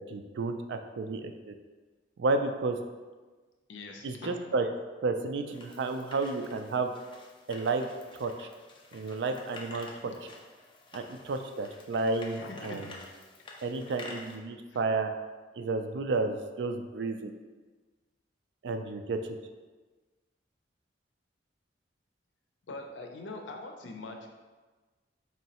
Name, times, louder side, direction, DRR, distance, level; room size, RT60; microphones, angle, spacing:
voice 1, 0.0-1.5 2.2-2.8 4.0-4.7 5.0-6.9 7.5-7.9 8.1-8.5 8.9-9.9 10.9-12.9 13.6-15.1 15.5-17.3 18.6-19.4, right 3 dB, 65° right, 6 dB, 0.3 m, -31 dB
voice 2, 3.7-4.4 12.4-12.9 14.7-14.8 22.7-24.3, left 2 dB, 85° left, 3 dB, 0.5 m, -42 dB
sound 1, 5.5-14.4, left 2 dB, 25° left, 0.5 m, -49 dB
4.4 x 3.1 x 2.8 m, 1.3 s
head